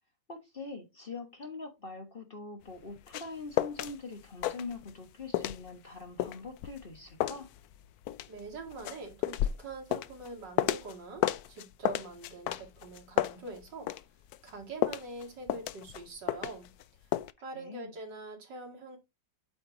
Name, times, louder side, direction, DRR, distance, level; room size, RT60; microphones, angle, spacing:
voice 1, 0.3-7.5 17.5-17.9, left 3 dB, 35° left, 1.3 m, -43 dB
sound 1, 2.7-3.9 4.2-5.1 5.3-11.0 11.2-14.0 14.3-16.8 17.1-17.3, left 13 dB, 70° left, 0.9 m, -32 dB
voice 2, 8.3-13.9 14.4-16.7 17.4-19.0, right 3 dB, 75° right, 2.8 m, -44 dB
8.4 x 4.4 x 3.9 m
omnidirectional pair, 1.9 m